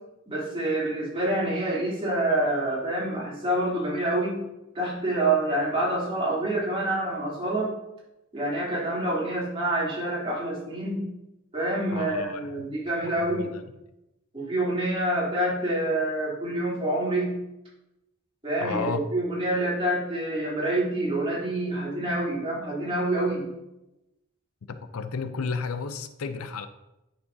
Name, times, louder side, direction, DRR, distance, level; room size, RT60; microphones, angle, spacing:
voice 1, 0.3-4.4 4.7-7.7 8.3-11.1 11.5-13.5 14.3-17.3 18.4-23.5, right 1 dB, 25° right, -7 dB, 2.9 m, -27 dB
voice 2, 11.9-12.5 13.0-13.6 18.6-19.0 24.7-26.7, left 5 dB, 80° left, 10 dB, 0.5 m, -32 dB
9.7 x 6.2 x 2.7 m, 0.93 s
head